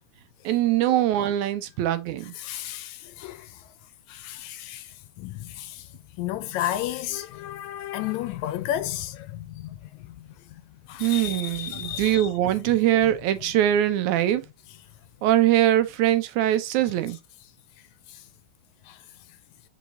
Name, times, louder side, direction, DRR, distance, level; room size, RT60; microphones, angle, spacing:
voice 1, 0.5-2.3 11.0-14.5 15.2-17.2, right 13 dB, 80° right, 2.1 m, -22 dB
voice 2, 2.4-3.6 4.1-5.9 6.2-10.3 10.9-12.3 18.1-18.2 18.9-19.0, left 12 dB, 80° left, 1.7 m, -33 dB
6.1 x 5.7 x 2.7 m
omnidirectional pair, 3.5 m